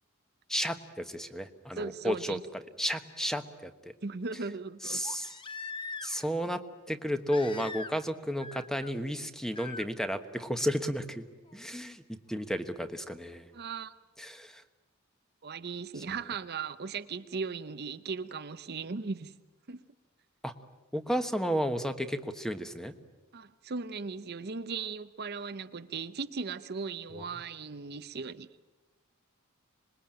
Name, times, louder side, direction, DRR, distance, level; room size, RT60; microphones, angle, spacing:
voice 1, 0.5-2.4 2.8-3.7 4.8-5.4 6.0-6.6 6.9-11.2 11.5-13.5 14.2-14.6 16.0-16.1 20.4-20.5 20.9-22.9 27.1-27.2, equal, ahead, 9 dB, 1.2 m, -33 dB
voice 2, 1.8-2.4 4.0-5.1 13.5-13.9 15.4-19.4 19.7-19.8 23.3-28.5, right 4 dB, 50° right, 11 dB, 0.7 m, -37 dB
Crying sobbing, 5.0-6.4 7.3-8.1 8.4-8.9 9.5-9.9 11.5-11.6, left 4 dB, 25° left, 1.0 m, -42 dB
26.0 x 21.0 x 8.8 m, 1.2 s
head